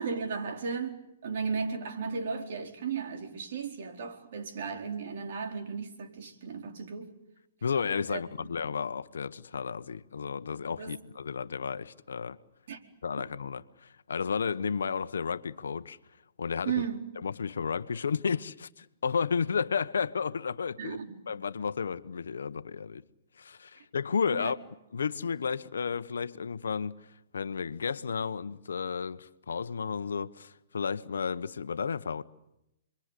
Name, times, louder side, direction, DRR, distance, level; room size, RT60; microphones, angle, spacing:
voice 1, 0.0-7.1 8.1-8.5 10.8-11.0 12.7-12.8 16.6-17.0 20.8-21.2 24.3-24.5, right 5 dB, 60° right, 4.4 m, -35 dB
voice 2, 7.6-12.4 13.0-16.0 16.4-16.8 17.2-21.0 21.3-23.0 23.4-24.6 24.9-27.0 27.3-32.2, left 6 dB, 80° left, 1.1 m, -32 dB
30.0 x 23.0 x 8.5 m
hypercardioid pair, 135°, 0 cm